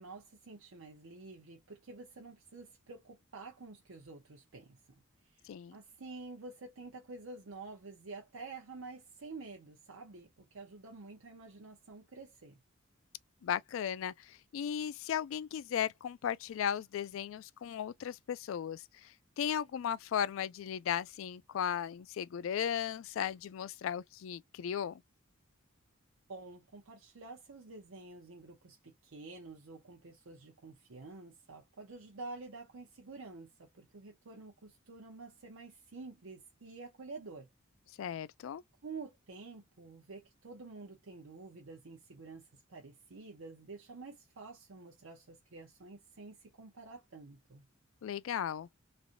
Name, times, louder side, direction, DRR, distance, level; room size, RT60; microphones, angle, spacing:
voice 1, 0.0-12.6 26.3-37.5 38.8-47.7, right 3 dB, 85° right, 0.8 m, -49 dB
voice 2, 13.4-18.8 19.4-25.0 38.0-38.6 48.0-48.7, left 9 dB, 75° left, 0.3 m, -36 dB
3.2 x 2.6 x 2.5 m
head